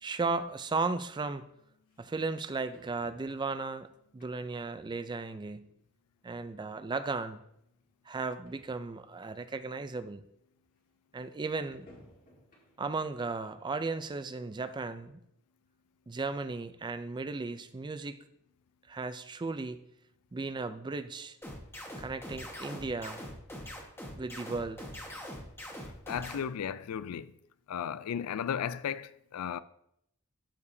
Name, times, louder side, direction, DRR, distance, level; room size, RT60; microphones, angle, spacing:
voice 1, 0.0-1.4 2.0-3.9 4.1-5.7 6.2-7.4 8.1-10.2 11.1-11.9 12.8-15.2 16.1-18.2 18.9-19.8 20.3-21.4 22.0-23.2 24.2-24.8, right 3 dB, 20° right, 0.4 m, -35 dB
sound 1, 1.9-2.0 2.7-3.7 4.2-4.7 5.1-5.2 6.2-6.3 6.5-6.6 7.4-7.5 7.8-7.9 8.2-8.3 8.5-8.9 9.5-9.6 11.7-13.0 13.4-13.5 14.0-14.1, equal, 40° left, 1.7 m, -58 dB
sound 2, 21.4-26.4, equal, 10° left, 1.2 m, -42 dB
voice 2, 26.1-27.3 27.7-29.6, left 8 dB, 80° left, 0.4 m, -35 dB
13.5 x 4.8 x 2.7 m
head